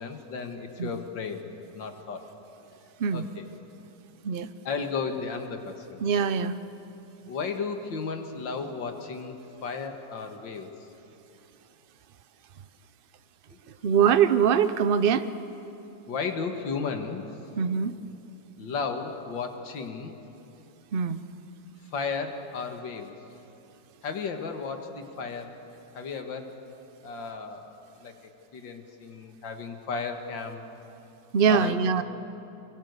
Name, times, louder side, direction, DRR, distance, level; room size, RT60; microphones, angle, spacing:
voice 1, 0.0-1.4 1.7-2.3 3.1-3.5 4.6-6.0 7.3-10.7 13.5-13.6 16.1-17.2 18.6-20.1 21.9-23.1 24.0-25.5 25.9-26.5 27.0-28.1 28.5-30.6 31.5-31.8, left 5 dB, 90° left, 5 dB, 2.4 m, -34 dB
voice 2, 6.0-6.5 13.8-15.3 17.6-18.0 20.9-21.2 31.3-32.0, right 7 dB, 65° right, 12 dB, 0.5 m, -23 dB
25.0 x 22.0 x 8.1 m, 2.9 s
omnidirectional pair, 2.0 m